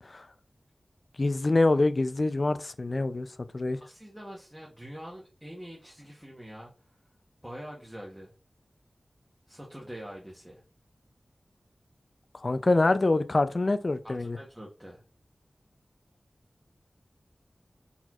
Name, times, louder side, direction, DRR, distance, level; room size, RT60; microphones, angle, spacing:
voice 1, 1.2-3.3 3.5-3.8 12.4-14.4, left 2 dB, 50° left, 0.4 m, -25 dB
voice 2, 3.8-6.7 7.4-8.3 9.5-10.6 14.0-15.0, equal, 10° right, 1.0 m, -44 dB
4.4 x 4.1 x 2.4 m
wide cardioid pair, 70°, 0 cm